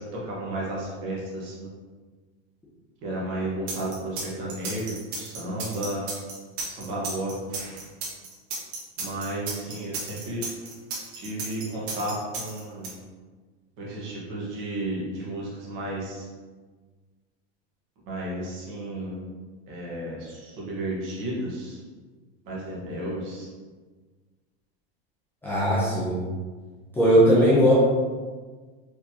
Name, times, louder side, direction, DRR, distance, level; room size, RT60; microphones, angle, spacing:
voice 1, 0.0-1.7 3.0-6.0 6.6-7.6 9.0-10.4 11.1-12.9 13.8-16.3 18.1-19.2 19.7-21.8 22.5-23.5, right 1 dB, 40° right, -5 dB, 1.4 m, -33 dB
sound 1, 3.7-12.9, right 3 dB, 80° right, 1.3 m, -34 dB
voice 2, 25.4-26.2 27.0-27.7, equal, 5° left, -10 dB, 0.7 m, -19 dB
4.6 x 3.2 x 2.8 m, 1.4 s
supercardioid pair, 165°, 31 cm